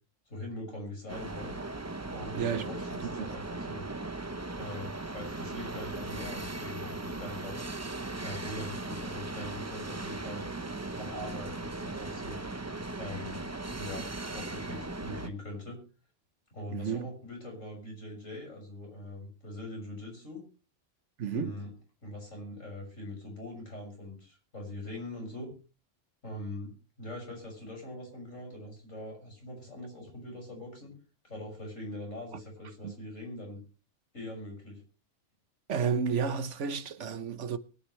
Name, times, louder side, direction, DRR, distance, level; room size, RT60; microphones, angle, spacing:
voice 1, 0.3-1.5 2.1-3.9 4.6-7.6 8.2-10.4 10.9-12.4 13.0-13.4 13.8-15.8 16.5-20.4 21.3-21.7 22.0-25.5 26.2-26.7 27.0-30.9 31.2-33.6 34.1-34.8, left 1 dB, 75° left, 6.5 m, -42 dB
sound 1, 1.1-15.3, right 2 dB, 15° right, 0.6 m, -38 dB
voice 2, 2.4-2.7 16.7-17.1 21.2-21.6 32.8-32.9 35.7-37.6, right 6 dB, 70° right, 1.2 m, -31 dB
22.5 x 9.4 x 3.2 m
omnidirectional pair, 1.3 m